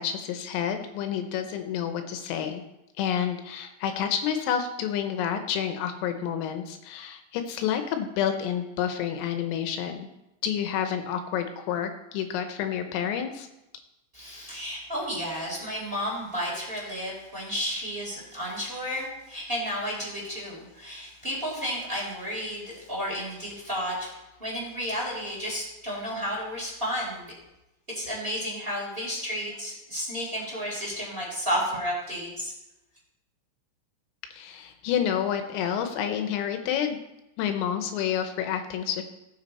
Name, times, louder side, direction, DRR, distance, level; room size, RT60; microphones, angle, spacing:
voice 1, 0.0-2.6 3.0-10.1 10.4-13.5 34.3-37.0 37.4-39.0, left 9 dB, 80° left, 7 dB, 3.5 m, -29 dB
voice 2, 14.1-27.3 27.9-32.5, equal, 10° right, -5 dB, 3.6 m, -32 dB
18.5 x 7.7 x 4.2 m, 0.93 s
omnidirectional pair, 5.9 m